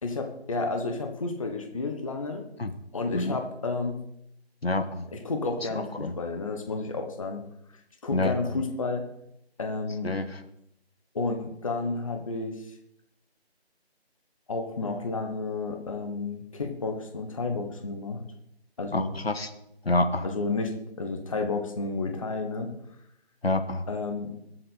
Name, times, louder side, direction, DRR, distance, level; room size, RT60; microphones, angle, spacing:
voice 1, 0.0-2.4 2.9-4.0 5.1-7.4 8.0-9.0 9.6-10.1 11.1-12.6 14.5-18.2 18.8-19.1 20.2-20.7 21.0-22.7 23.9-24.3, left 3 dB, 30° left, 4 dB, 1.2 m, -31 dB
voice 2, 4.6-5.1 5.7-6.1 8.1-8.6 10.0-10.4 18.9-19.5 19.8-20.3 23.4-23.8, left 2 dB, 65° left, 9 dB, 1.3 m, -27 dB
20.5 x 7.8 x 4.1 m, 0.79 s
figure-of-eight pair, 155°, 33 cm